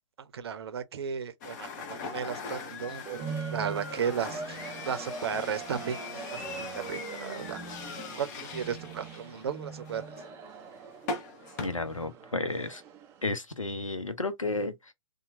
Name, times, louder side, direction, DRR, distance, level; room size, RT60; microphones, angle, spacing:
voice 1, 0.3-3.2 3.5-7.6 8.2-10.0, right 7 dB, 50° right, 0.6 m, -35 dB
sound 1, 1.4-11.7, left 4 dB, 35° left, 0.7 m, -41 dB
sound 2, 3.1-13.3, right 5 dB, 15° right, 0.4 m, -42 dB
voice 2, 11.6-12.8 13.2-14.9, left 2 dB, 85° left, 0.7 m, -32 dB
2.8 x 2.2 x 2.5 m
figure-of-eight pair, 115°, 16 cm